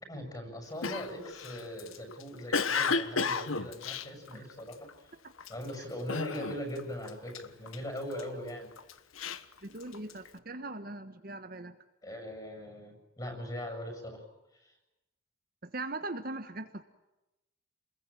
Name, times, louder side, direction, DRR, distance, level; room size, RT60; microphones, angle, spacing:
voice 1, 0.1-4.9 5.5-8.7 12.0-14.2 14.6-14.7, equal, 20° left, 6 dB, 7.7 m, -40 dB
Cough, 0.8-4.9 5.4-5.7 6.1-6.8 7.1-8.2 8.8-10.3, left 4 dB, 80° left, 1.3 m, -33 dB
voice 2, 9.6-11.7 15.6-16.8, right 2 dB, 45° right, 8 dB, 1.4 m, -40 dB
28.5 x 21.5 x 8.9 m, 0.97 s
head